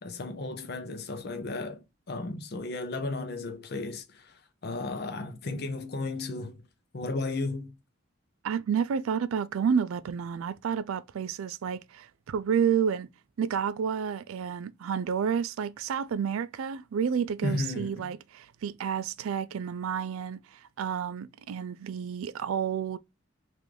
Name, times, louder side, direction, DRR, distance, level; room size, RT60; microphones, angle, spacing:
voice 1, 0.0-6.6 6.9-7.7 17.4-18.1, left 2 dB, 50° left, 0.6 m, -34 dB
voice 2, 8.4-13.1 13.4-23.0, right 7 dB, 80° right, 0.3 m, -30 dB
3.1 x 2.5 x 3.5 m
head